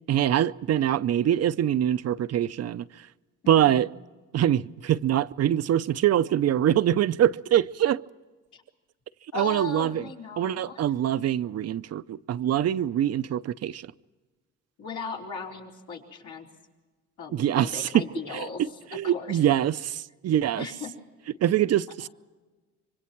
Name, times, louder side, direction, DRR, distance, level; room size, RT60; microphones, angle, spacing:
voice 1, 0.1-2.8 3.5-3.9 4.3-8.0 9.3-10.0 10.4-13.9 17.3-18.0 18.3-20.7 21.4-22.1, right 11 dB, 55° right, 0.6 m, -24 dB
voice 2, 3.4-3.8 8.5-8.6 9.3-10.9 14.8-16.5 17.2-18.6 18.9-19.4 20.6-20.9, left 5 dB, 75° left, 4.2 m, -37 dB
26.0 x 24.5 x 4.5 m
cardioid pair, 90°, 30 cm